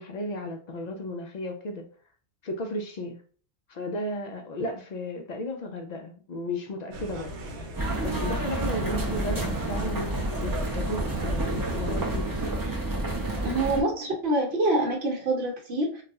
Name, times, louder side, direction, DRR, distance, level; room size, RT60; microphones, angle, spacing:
voice 1, 0.0-1.9 2.4-3.2 3.7-7.4 8.0-10.1 10.4-12.3, left 1 dB, 60° left, 3 dB, 0.4 m, -34 dB
sound 1, 6.9-12.5, equal, 90° right, 1.0 m, -38 dB
sound 2, 7.8-13.8, right 2 dB, 30° right, 0.4 m, -29 dB
voice 2, 13.4-16.0, right 1 dB, 65° right, -2 dB, 1.1 m, -26 dB
2.3 x 2.3 x 4.0 m, 0.44 s
omnidirectional pair, 1.1 m